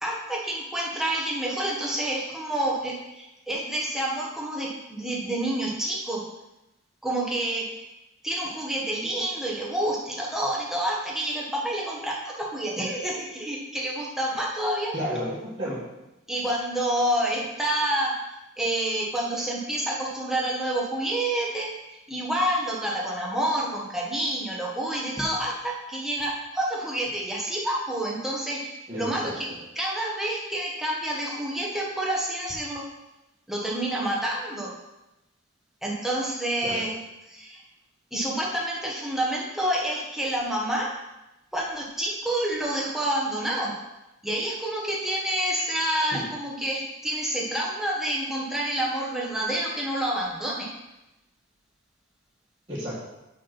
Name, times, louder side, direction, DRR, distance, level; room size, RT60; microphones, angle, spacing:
voice 1, 0.0-6.2 7.0-7.8 8.2-14.9 16.3-18.1 18.6-21.7 22.1-29.5 29.8-32.8 33.5-34.7 35.8-36.9 37.3-37.6 38.1-40.9 41.5-43.7 44.2-50.7, right 1 dB, ahead, -4 dB, 1.4 m, -28 dB
voice 2, 14.9-15.8 28.9-29.6 36.6-36.8 46.1-46.2 52.7-53.0, equal, 25° right, -11 dB, 1.9 m, -32 dB
6.2 x 5.9 x 5.9 m, 0.96 s
head